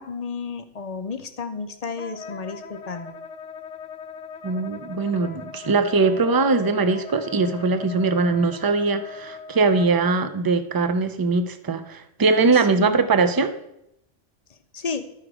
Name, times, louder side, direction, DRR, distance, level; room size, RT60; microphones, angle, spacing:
voice 1, 0.0-3.1 12.5-13.2 14.7-15.0, left 5 dB, 40° left, 8 dB, 0.6 m, -32 dB
Wind instrument woodwind instrument, 2.0-10.2, left 5 dB, 85° left, 1.1 m, -40 dB
voice 2, 4.4-13.5, right 4 dB, 35° right, 10 dB, 0.3 m, -21 dB
12.5 x 5.0 x 4.8 m, 0.80 s
omnidirectional pair, 1.2 m